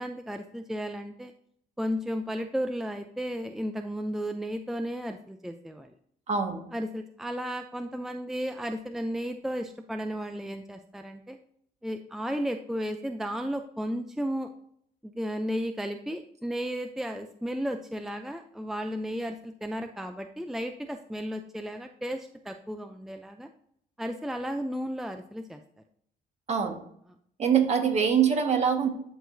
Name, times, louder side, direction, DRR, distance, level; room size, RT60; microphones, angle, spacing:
voice 1, 0.0-1.3 1.8-5.9 6.7-11.4 11.8-14.5 15.0-23.5 24.0-25.6, equal, ahead, 6 dB, 0.5 m, -34 dB
voice 2, 6.3-6.7 26.5-26.8 27.4-28.9, right 7 dB, 40° right, 4 dB, 1.5 m, -24 dB
12.5 x 4.7 x 2.7 m, 0.66 s
cardioid pair, 110°, 17 cm